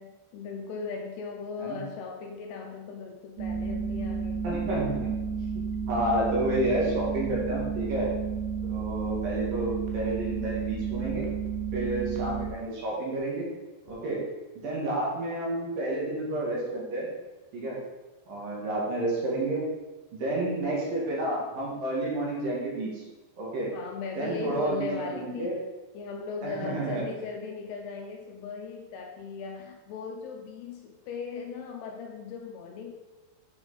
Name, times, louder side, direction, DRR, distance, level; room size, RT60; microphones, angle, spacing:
voice 1, 0.0-4.5 23.7-25.6 25.9-32.9, left 5 dB, 80° left, 2 dB, 2.5 m, -38 dB
sound 1, 3.4-12.5, right 6 dB, 80° right, 3.5 m, -32 dB
voice 2, 4.4-5.2 5.9-8.1 8.7-11.2 11.7-13.5 13.9-14.2 14.6-17.1 17.5-17.8 18.3-19.6 20.1-23.0 23.4-23.7 24.2-25.6 26.4-27.0, right 1 dB, 55° right, -4 dB, 3.2 m, -30 dB
8.0 x 7.1 x 4.0 m, 1.2 s
omnidirectional pair, 5.1 m